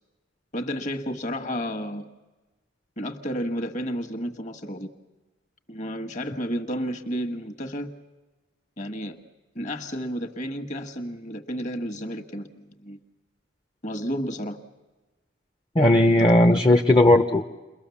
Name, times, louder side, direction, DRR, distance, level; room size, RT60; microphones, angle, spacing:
voice 1, 0.5-2.1 3.0-4.9 5.7-7.9 8.8-9.2 9.5-13.0 13.8-14.6 16.2-16.8, equal, 40° left, 6 dB, 1.6 m, -32 dB
voice 2, 15.7-17.4, left 1 dB, 25° left, 5 dB, 0.8 m, -17 dB
29.5 x 22.5 x 7.1 m, 1.2 s
head